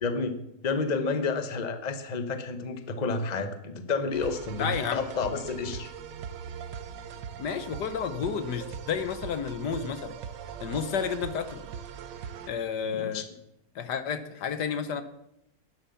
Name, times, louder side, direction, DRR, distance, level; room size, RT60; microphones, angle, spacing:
voice 1, 0.0-0.4 0.6-5.9 12.9-13.3, left 4 dB, 30° left, 8 dB, 1.1 m, -30 dB
sound 1, 4.1-12.5, right 7 dB, 85° right, 1.6 m, -40 dB
voice 2, 4.6-5.0 7.4-10.2 10.6-11.6 12.5-13.2 13.7-15.0, left 7 dB, 70° left, 11 dB, 1.5 m, -31 dB
11.5 x 11.0 x 7.0 m, 0.81 s
omnidirectional pair, 1.9 m